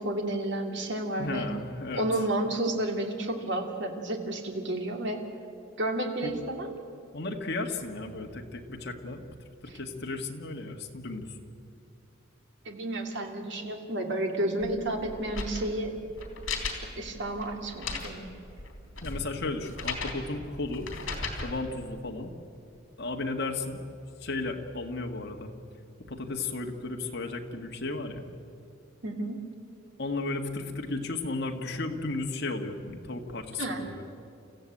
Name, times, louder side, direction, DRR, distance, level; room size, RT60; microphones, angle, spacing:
voice 1, 0.0-1.5 1.9-5.2 5.8-6.8 12.6-15.9 16.9-18.3 29.0-29.4 33.6-33.8, right 1 dB, 60° right, 3 dB, 2.6 m, -31 dB
voice 2, 1.2-2.0 6.2-6.3 7.1-9.3 9.7-11.4 19.0-20.9 21.4-22.3 23.0-23.8 24.2-25.5 26.1-28.2 30.0-34.0, left 2 dB, 55° left, 2 dB, 1.9 m, -34 dB
sound 1, 14.6-21.5, left 3 dB, 75° left, 3.4 m, -37 dB
29.0 x 15.0 x 8.6 m, 2.6 s
head